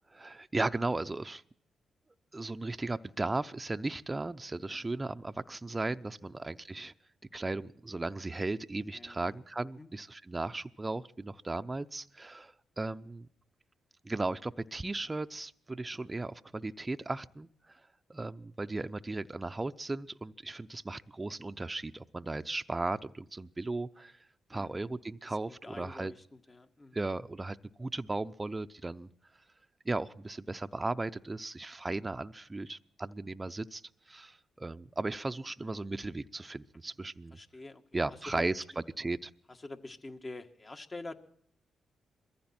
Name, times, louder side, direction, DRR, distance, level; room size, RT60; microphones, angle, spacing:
voice 1, 0.1-1.4 2.3-6.9 7.3-13.3 14.0-17.8 18.1-24.2 24.5-26.1 26.9-29.1 29.8-37.4 37.9-39.3, right 2 dB, 25° right, 10 dB, 0.7 m, -36 dB
voice 2, 8.9-9.3 9.8-9.9 24.5-24.8 25.3-27.0 37.3-38.0 38.4-38.5 39.5-41.1, left 2 dB, 35° left, 5 dB, 1.9 m, -46 dB
22.0 x 15.0 x 4.4 m, 0.64 s
supercardioid pair, 55°, 0 cm